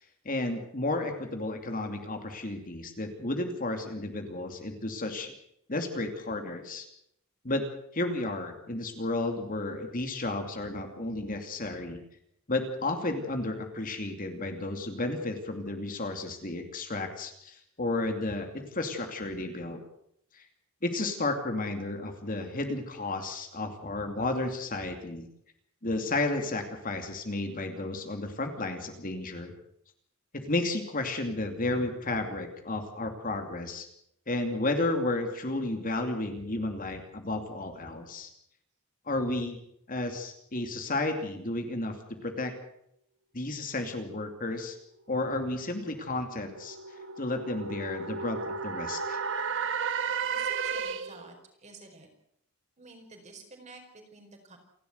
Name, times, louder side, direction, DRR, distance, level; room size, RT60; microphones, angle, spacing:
voice 1, 0.2-5.3 5.7-6.9 7.4-7.7 7.9-12.0 12.5-19.8 20.3-20.4 20.8-25.3 25.8-29.5 30.3-33.9 34.3-38.3 39.1-39.6 39.9-42.0 42.2-42.5 43.3-44.8 45.1-46.8 47.2-49.2, left 2 dB, 40° left, 5 dB, 2.7 m, -32 dB
sound 1, 45.5-51.3, right 6 dB, 55° right, 1.6 m, -34 dB
voice 2, 50.3-52.1 52.8-54.6, right 3 dB, 30° right, 4 dB, 4.8 m, -50 dB
28.5 x 12.5 x 8.0 m, 0.76 s
head